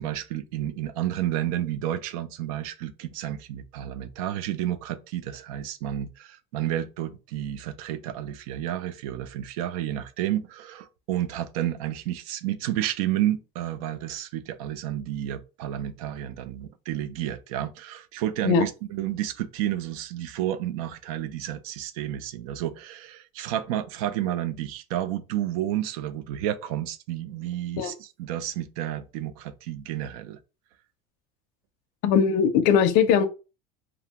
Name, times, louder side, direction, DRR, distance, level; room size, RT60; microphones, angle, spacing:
voice 1, 0.0-30.4, right 12 dB, 90° right, 0.4 m, -31 dB
voice 2, 32.0-33.3, left 7 dB, 55° left, 0.4 m, -20 dB
2.4 x 2.1 x 2.8 m
cardioid pair, 165°, 18 cm